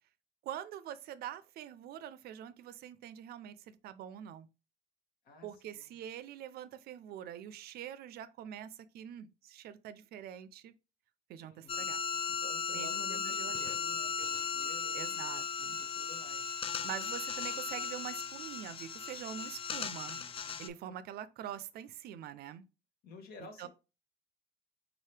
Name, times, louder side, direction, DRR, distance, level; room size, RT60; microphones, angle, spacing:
voice 1, 0.4-4.5 5.4-10.7 11.3-12.0 12.7-13.8 14.9-15.8 16.8-20.2 20.6-22.6 23.6-23.7, right 10 dB, 65° right, 0.4 m, -45 dB
voice 2, 5.2-5.9 11.4-11.9 12.3-15.4 15.8-16.8 19.9-20.6 23.0-23.7, left 3 dB, 65° left, 1.2 m, -54 dB
sound 1, 11.7-20.7, left 6 dB, 35° left, 0.4 m, -37 dB
3.9 x 2.8 x 3.2 m
cardioid pair, 110°, 17 cm